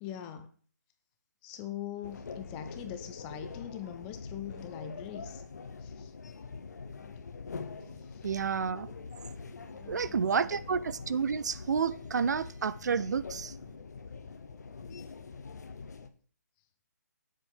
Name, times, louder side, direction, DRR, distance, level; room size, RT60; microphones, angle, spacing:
voice 1, 0.0-0.5 1.4-5.4 5.8-6.1 7.0-7.1 8.1-8.3 9.7-10.2, left 10 dB, 10° left, 0.3 m, -42 dB
sound 1, 2.0-16.1, left 5 dB, 65° left, 0.9 m, -44 dB
voice 2, 8.2-8.9 9.9-13.5, right 6 dB, 70° right, 0.4 m, -30 dB
7.2 x 3.7 x 6.1 m
hypercardioid pair, 165°, 10 cm